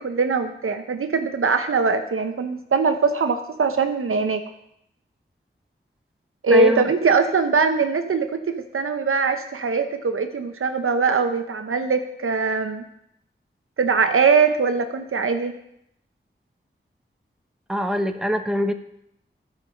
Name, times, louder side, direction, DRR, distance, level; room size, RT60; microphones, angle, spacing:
voice 1, 0.0-4.4 6.4-12.8 13.8-15.5, right 4 dB, 85° right, 7 dB, 0.8 m, -21 dB
voice 2, 6.5-6.8 17.7-18.7, equal, 5° right, 7 dB, 0.9 m, -23 dB
13.0 x 5.3 x 5.1 m, 0.76 s
cardioid pair, 50°, 21 cm